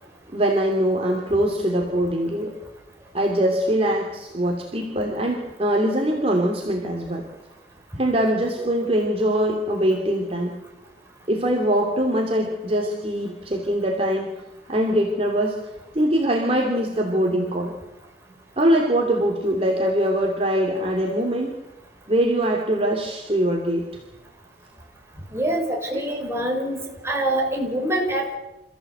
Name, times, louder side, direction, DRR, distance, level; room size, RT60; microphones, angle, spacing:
voice 1, 0.3-2.6 3.1-7.3 8.0-10.6 11.3-14.3 14.7-15.6 15.9-17.7 18.6-21.5 22.1-23.9 25.9-26.0, right 1 dB, 35° right, 1 dB, 2.8 m, -22 dB
voice 2, 25.3-28.4, right 1 dB, 15° right, 0 dB, 4.9 m, -25 dB
28.0 x 15.0 x 8.1 m, 0.95 s
head